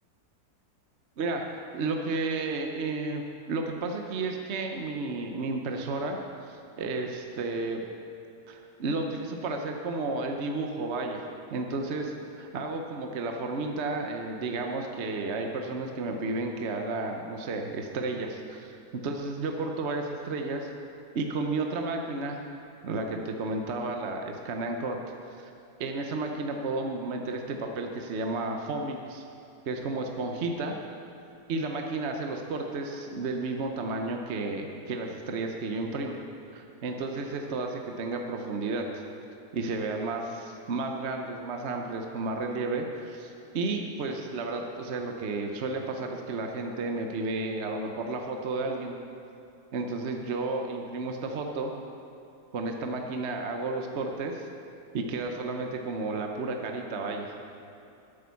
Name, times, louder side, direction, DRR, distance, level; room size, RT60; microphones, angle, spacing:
voice 1, 1.2-3.2 3.5-7.8 8.5-11.2 11.5-12.1 12.4-20.7 21.1-22.4 22.8-25.0 25.4-25.5 25.8-29.2 29.7-30.8 31.5-36.1 36.5-39.0 39.5-49.0 49.7-51.7 52.5-54.5 54.9-57.3, right 3 dB, 50° right, 3 dB, 0.9 m, -32 dB
10.5 x 8.8 x 7.0 m, 2.7 s
omnidirectional pair, 1.8 m